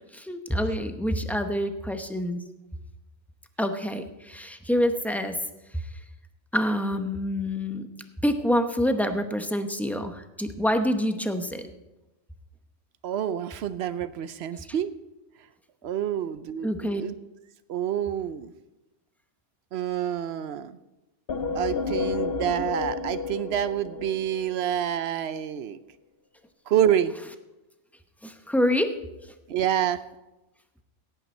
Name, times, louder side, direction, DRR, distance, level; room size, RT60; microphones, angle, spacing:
voice 1, 0.1-2.4 3.6-5.4 6.5-7.9 8.2-11.7 16.6-17.0 28.2-28.9, equal, ahead, 7 dB, 0.6 m, -26 dB
voice 2, 13.0-14.9 15.8-17.1 17.7-18.5 19.7-20.8 21.5-25.8 26.7-27.1 29.5-30.0, right 10 dB, 65° right, 14 dB, 0.8 m, -27 dB
sound 1, 21.3-24.9, left 4 dB, 60° left, 0.9 m, -31 dB
17.0 x 8.9 x 4.4 m, 0.98 s
omnidirectional pair, 1.3 m